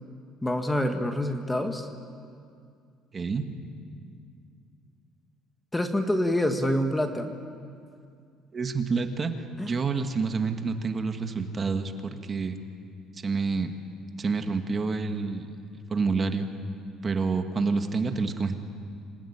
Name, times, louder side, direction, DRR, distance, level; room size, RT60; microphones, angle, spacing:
voice 1, 0.4-1.9 5.7-7.3 9.6-9.7, left 1 dB, 10° left, 6 dB, 1.4 m, -26 dB
voice 2, 3.1-3.5 8.5-9.3 9.6-12.6 13.2-13.7 14.2-15.5 15.9-16.5 17.0-18.5, right 4 dB, 25° right, 6 dB, 1.5 m, -28 dB
27.0 x 18.0 x 9.9 m, 2.3 s
cardioid pair, 145°, 0 cm